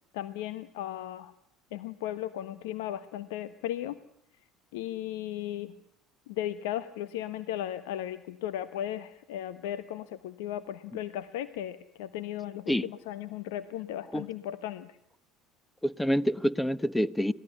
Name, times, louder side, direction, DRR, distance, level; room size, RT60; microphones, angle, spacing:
voice 1, 0.1-1.3 1.7-4.0 4.7-5.7 6.3-15.0, left 12 dB, 75° left, 1.1 m, -36 dB
voice 2, 15.8-17.3, equal, 5° left, 1.1 m, -27 dB
26.0 x 19.0 x 8.2 m
hypercardioid pair, 70°, 0 cm